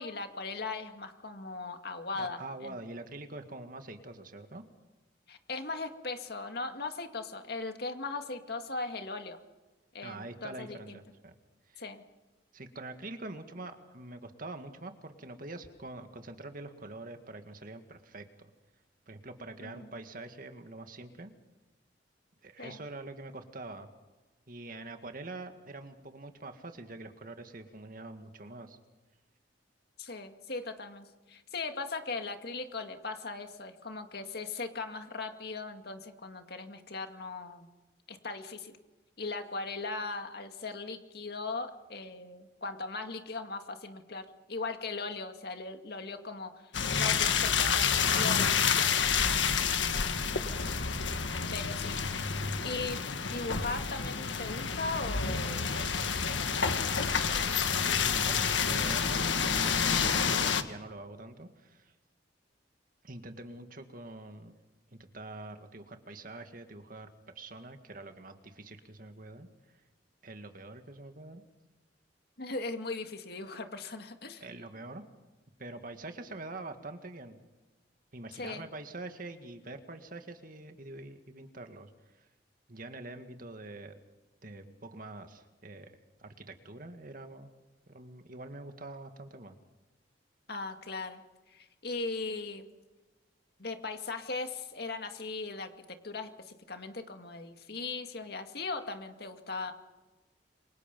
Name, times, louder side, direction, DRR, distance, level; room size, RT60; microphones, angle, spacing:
voice 1, 0.0-2.8 5.3-9.4 9.9-11.0 11.8-12.0 19.6-19.9 22.6-22.8 30.0-37.7 38.1-38.8 39.2-50.1 51.5-52.1 52.6-57.5 72.4-74.4 78.3-78.7 90.5-92.7 93.6-99.7, left 3 dB, 60° left, 6 dB, 2.1 m, -39 dB
voice 2, 2.1-4.6 10.0-11.3 11.7-11.8 12.5-18.5 19.1-21.3 22.4-23.9 24.5-28.8 57.8-60.3 60.6-61.9 63.0-64.6 64.9-67.1 67.4-69.8 70.2-71.4 74.4-75.0 75.6-77.4 78.1-82.3 82.7-83.9 84.4-85.9 86.2-87.5 87.9-89.5, right 2 dB, 50° right, 7 dB, 2.0 m, -45 dB
sound 1, 46.7-60.6, left 6 dB, 90° left, 1.6 m, -29 dB
28.0 x 24.0 x 5.4 m, 1.2 s
head